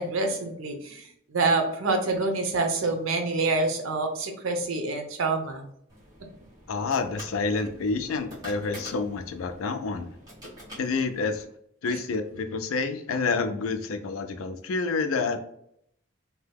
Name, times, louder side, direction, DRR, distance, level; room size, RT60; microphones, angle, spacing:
voice 1, 0.0-5.6, right 3 dB, 85° right, 5 dB, 0.6 m, -27 dB
sound 1, 5.9-11.4, equal, 20° right, 1.4 m, -46 dB
voice 2, 6.7-10.1 10.8-11.4 11.8-15.4, left 4 dB, 85° left, 8 dB, 0.4 m, -28 dB
2.7 x 2.2 x 3.4 m, 0.72 s
head